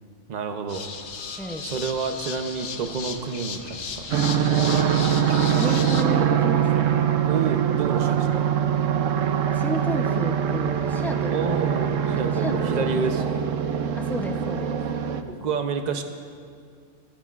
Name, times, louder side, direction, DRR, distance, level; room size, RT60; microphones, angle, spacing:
voice 1, 0.3-0.9 1.6-4.4 7.3-8.4 11.3-13.4 15.2-16.0, right 5 dB, 40° right, 6 dB, 0.7 m, -29 dB
sound 1, 0.7-6.0, left 6 dB, 75° left, 1.2 m, -35 dB
sound 2, 4.1-15.2, right 9 dB, 75° right, 1.0 m, -23 dB
voice 2, 5.5-6.9 9.5-11.7 12.3-13.3 13.9-14.8, equal, ahead, 3 dB, 0.5 m, -32 dB
29.5 x 10.0 x 2.5 m, 2.2 s
omnidirectional pair, 1.4 m